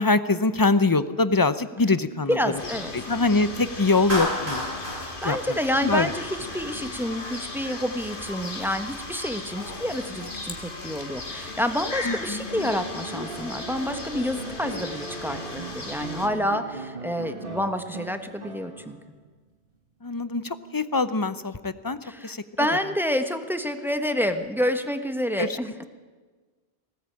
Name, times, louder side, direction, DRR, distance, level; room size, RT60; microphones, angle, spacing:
voice 1, 0.0-2.6 2.9-4.6 5.2-6.1 12.0-12.5 16.3-16.4 20.0-22.4 25.4-25.6, left 3 dB, 20° left, 13 dB, 0.7 m, -24 dB
voice 2, 2.3-2.9 4.9-19.0 22.0-25.9, equal, ahead, 7 dB, 1.2 m, -28 dB
sound 1, 2.6-16.3, left 2 dB, 55° left, 2.2 m, -36 dB
Clapping, 4.1-6.4, equal, 75° right, 6.8 m, -31 dB
sound 2, 12.7-19.2 20.6-20.7, right 3 dB, 55° right, 2.1 m, -39 dB
20.0 x 17.5 x 8.7 m, 1.4 s
omnidirectional pair, 1.1 m